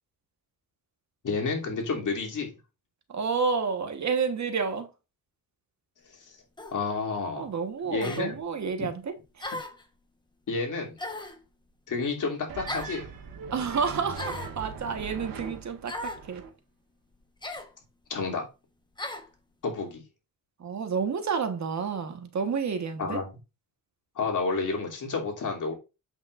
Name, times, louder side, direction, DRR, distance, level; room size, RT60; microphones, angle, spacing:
voice 1, 1.2-2.5 6.7-7.5 7.9-8.4 10.5-11.0 11.9-13.1 18.1-18.5 19.6-20.0 23.0-23.3 24.2-25.7, left 4 dB, 65° left, 3.0 m, -30 dB
voice 2, 3.1-4.9 7.4-9.6 13.5-16.5 20.6-23.2, right 5 dB, 55° right, 1.4 m, -30 dB
sound 1, 6.6-6.8 8.0-8.3 9.4-9.8 11.0-11.4 12.7-13.0 14.1-14.6 15.9-16.2 17.4-17.7 19.0-19.3, left 1 dB, 15° left, 1.1 m, -36 dB
sound 2, 12.5-16.5, right 5 dB, 80° right, 1.8 m, -40 dB
8.3 x 7.1 x 2.5 m
wide cardioid pair, 130°, 34 cm